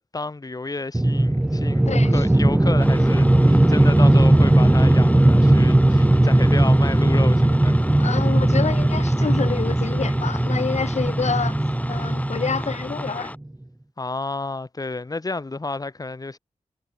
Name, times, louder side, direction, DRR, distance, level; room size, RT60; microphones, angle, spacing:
voice 1, 0.1-7.9 14.0-16.4, left 3 dB, 30° left, 5.1 m, -31 dB
sound 1, 0.9-13.2, right 1 dB, 10° right, 0.5 m, -18 dB
voice 2, 1.9-2.2 8.0-11.6 11.9-13.3, left 5 dB, 70° left, 5.5 m, -27 dB
sound 2, 2.8-13.4, left 1 dB, 10° left, 4.4 m, -36 dB
wide cardioid pair, 115°, 12 cm